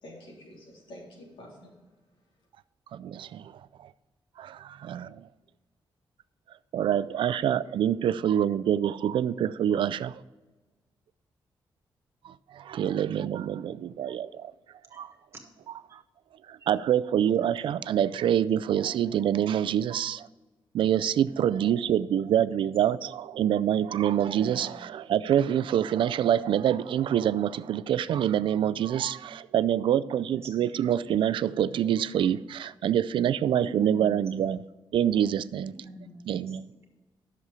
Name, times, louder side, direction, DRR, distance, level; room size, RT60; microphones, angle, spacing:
voice 1, 0.0-2.5, left 1 dB, 80° left, 3.6 m, -49 dB
voice 2, 2.9-3.9 4.4-5.3 6.7-10.2 12.2-14.5 14.9-15.1 15.7-16.0 16.5-20.3 20.7-34.6 34.9-35.7 36.3-36.6, right 10 dB, 75° right, 0.4 m, -26 dB
voice 3, 24.3-24.6 30.3-30.9 33.6-34.2 35.7-36.4, right 1 dB, 30° right, 1.9 m, -42 dB
11.0 x 7.0 x 5.0 m
wide cardioid pair, 155°, 9 cm